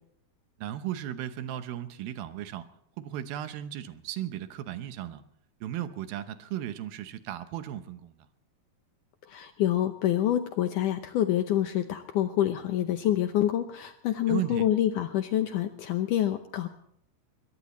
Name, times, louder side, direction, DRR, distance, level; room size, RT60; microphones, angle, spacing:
voice 1, 0.6-2.7 3.0-5.2 5.6-8.3 14.3-14.7, right 12 dB, 75° right, 10 dB, 2.6 m, -35 dB
voice 2, 9.3-16.7, left 12 dB, 75° left, 8 dB, 1.9 m, -27 dB
21.5 x 21.5 x 3.1 m, 0.73 s
omnidirectional pair, 4.5 m